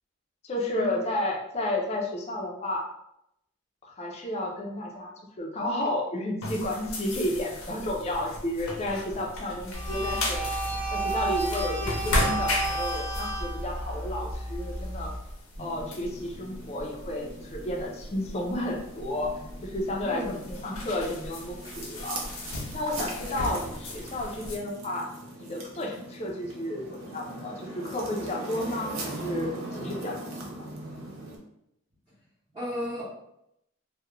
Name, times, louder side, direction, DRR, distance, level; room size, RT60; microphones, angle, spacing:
voice 1, 0.4-2.9 3.8-10.4 10.9-15.1 15.6-19.3 19.6-22.2 22.7-25.1 25.4-30.7, left 1 dB, 30° left, 1 dB, 0.4 m, -32 dB
sound 1, 6.4-24.6, left 1 dB, 75° left, 0.6 m, -36 dB
sound 2, 9.7-15.2, right 2 dB, 10° left, 0.8 m, -31 dB
sound 3, 15.6-31.4, right 2 dB, 70° right, 0.6 m, -41 dB
voice 2, 32.5-33.1, equal, 25° right, -12 dB, 0.7 m, -33 dB
2.3 x 2.1 x 3.0 m, 0.79 s
head